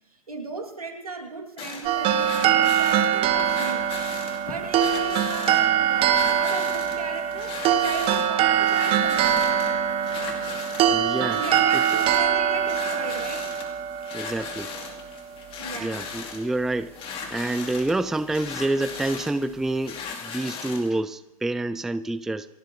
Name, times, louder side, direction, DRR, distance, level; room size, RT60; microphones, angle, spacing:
voice 1, 0.3-3.9 4.4-9.5 11.3-13.5 15.6-16.1, right 3 dB, 85° right, 2 dB, 2.8 m, -36 dB
sound 1, 1.6-20.9, left 5 dB, 30° left, 2.6 m, -38 dB
sound 2, 1.8-15.1, right 9 dB, 30° right, 1.0 m, -23 dB
voice 2, 10.9-11.4 11.7-12.0 14.1-14.7 15.8-16.9 17.3-22.5, right 2 dB, ahead, 15 dB, 0.4 m, -28 dB
28.5 x 10.0 x 3.2 m, 0.98 s
figure-of-eight pair, 105°, 18 cm